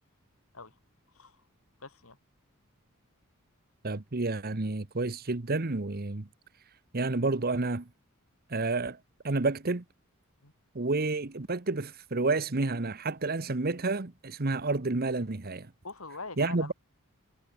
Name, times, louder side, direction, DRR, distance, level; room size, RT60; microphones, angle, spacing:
voice 1, 1.8-2.2 10.4-10.5 15.8-16.7, left 3 dB, 75° left, 5.4 m, -43 dB
voice 2, 3.8-6.3 6.9-7.9 8.5-9.0 9.2-9.8 10.7-15.7 16.4-16.7, right 3 dB, 45° right, 1.1 m, -30 dB
head